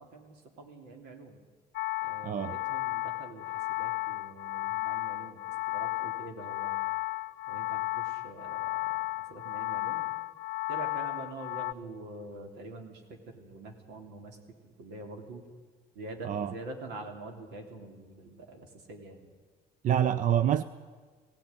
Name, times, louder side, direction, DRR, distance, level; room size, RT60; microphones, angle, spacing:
voice 1, 0.0-1.4 2.0-5.4 5.6-6.8 7.5-9.0 9.3-10.0 10.7-15.4 15.9-19.3, right 2 dB, 90° right, 3.2 m, -45 dB
sound 1, 1.7-11.7, left 20 dB, 80° left, 0.6 m, -34 dB
voice 2, 2.2-2.6 16.2-16.5 19.8-20.6, right 10 dB, 50° right, 0.6 m, -26 dB
17.5 x 17.0 x 9.7 m
cardioid pair, 110°, 17 cm